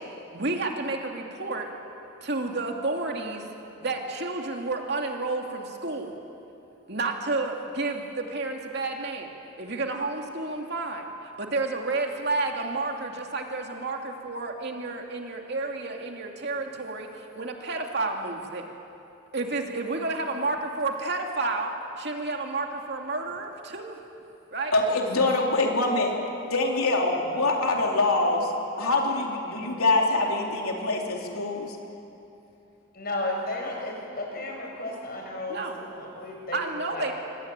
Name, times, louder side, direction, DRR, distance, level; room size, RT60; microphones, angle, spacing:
voice 1, 0.3-1.7 2.2-3.4 3.8-6.2 6.9-9.3 9.6-18.7 19.3-24.0 24.5-24.7 25.2-25.3 35.5-35.7 36.5-37.1, right 3 dB, 50° right, 2 dB, 2.7 m, -31 dB
voice 2, 24.7-26.2 26.5-28.5 28.8-31.8, left 2 dB, 85° left, 0 dB, 4.0 m, -24 dB
voice 3, 32.9-36.6 36.9-37.0, left 1 dB, 45° left, 1 dB, 6.2 m, -33 dB
26.5 x 24.0 x 9.0 m, 2.8 s
head